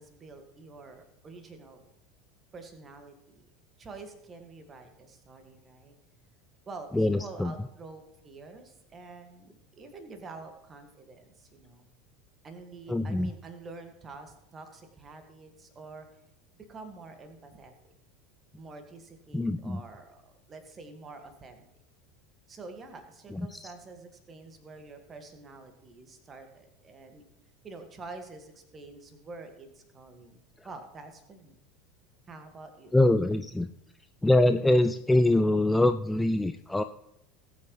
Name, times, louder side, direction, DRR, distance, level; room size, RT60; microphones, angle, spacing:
voice 1, 0.0-1.8 2.5-3.4 3.8-6.0 6.7-11.9 12.4-16.1 16.7-17.7 18.5-21.6 22.5-27.2 27.6-31.6 32.3-32.9, right 3 dB, 25° right, 6 dB, 1.9 m, -47 dB
voice 2, 6.9-7.5 12.9-13.3 19.3-19.8 23.3-23.7 32.9-33.7 34.2-36.8, left 1 dB, 10° left, 10 dB, 0.4 m, -24 dB
19.0 x 8.1 x 3.2 m, 0.83 s
figure-of-eight pair, 75°, 0 cm